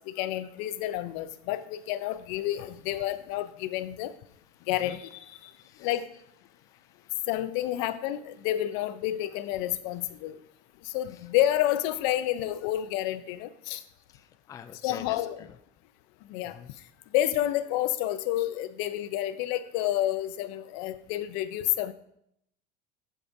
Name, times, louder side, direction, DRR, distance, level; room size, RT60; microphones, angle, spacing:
voice 1, 0.2-4.1 4.7-5.2 5.8-6.1 7.3-10.4 10.9-13.8 14.8-15.5 16.3-16.6 17.1-21.9, left 13 dB, 65° left, 13 dB, 0.6 m, -29 dB
voice 2, 4.6-5.0 5.4-5.9 6.5-7.2 11.1-11.2 14.1-15.5 16.5-16.7, left 8 dB, 15° left, 9 dB, 0.3 m, -47 dB
14.0 x 4.9 x 2.7 m, 0.74 s
supercardioid pair, 140°, 20 cm